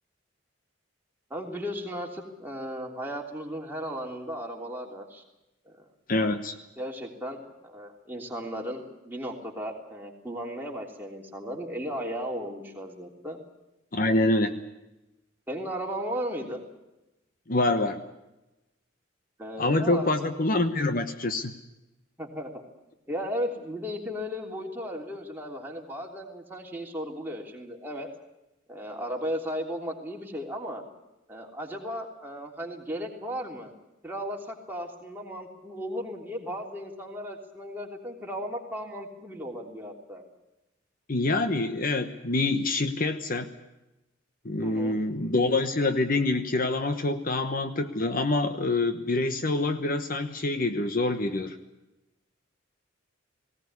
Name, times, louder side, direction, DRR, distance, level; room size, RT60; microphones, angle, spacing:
voice 1, 1.3-5.2 5.6-5.8 6.8-13.4 15.5-16.6 19.4-20.3 22.2-22.6 23.1-28.1 28.7-30.8 31.3-33.7 34.0-40.2 44.6-45.0, equal, 10° right, 0 dB, 3.2 m, -35 dB
voice 2, 6.1-6.6 13.9-14.6 17.5-18.1 19.6-21.5 41.1-43.5 44.4-51.6, left 2 dB, 45° left, 8 dB, 1.1 m, -26 dB
19.0 x 18.0 x 9.7 m, 0.97 s
head